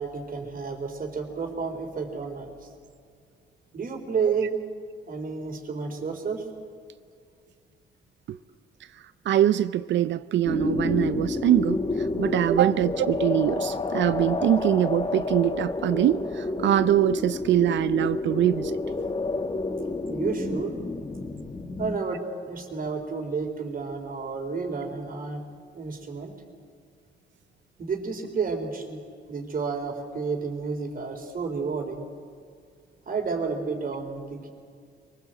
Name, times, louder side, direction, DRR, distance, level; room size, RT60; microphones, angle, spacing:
voice 1, 0.0-2.5 3.7-4.5 5.1-6.4 20.1-20.8 21.8-25.4 25.7-26.3 27.8-29.0 29.3-32.1 33.1-34.5, right 5 dB, 45° right, 4 dB, 3.9 m, -31 dB
voice 2, 9.3-18.8, right 12 dB, 65° right, 14 dB, 0.5 m, -23 dB
sound 1, 10.4-22.0, left 3 dB, 25° left, 1.3 m, -29 dB
23.0 x 20.0 x 7.8 m, 2.2 s
cardioid pair, 90°, 20 cm